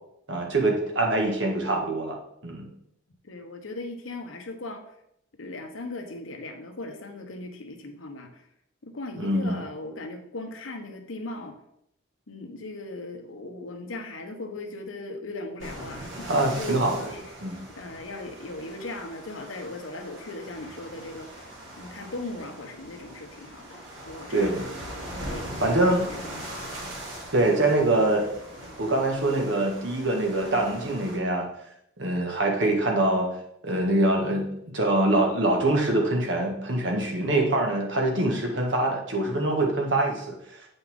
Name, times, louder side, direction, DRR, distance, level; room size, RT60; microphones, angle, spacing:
voice 1, 0.3-2.7 9.2-9.6 16.3-17.1 17.4-17.5 24.3-24.6 25.6-26.1 27.3-28.3 28.8-31.5 32.0-33.3 33.6-40.3, right 2 dB, 65° right, 0 dB, 1.6 m, -24 dB
voice 2, 3.2-4.8 5.4-8.3 8.8-11.6 12.3-17.2 17.8-21.5 21.8-24.9 25.3-26.2 26.5-26.6, left 2 dB, 90° left, 5 dB, 1.0 m, -38 dB
sound 1, 15.6-31.2, right 1 dB, 85° right, 2.4 m, -41 dB
8.0 x 5.6 x 3.6 m, 0.74 s
head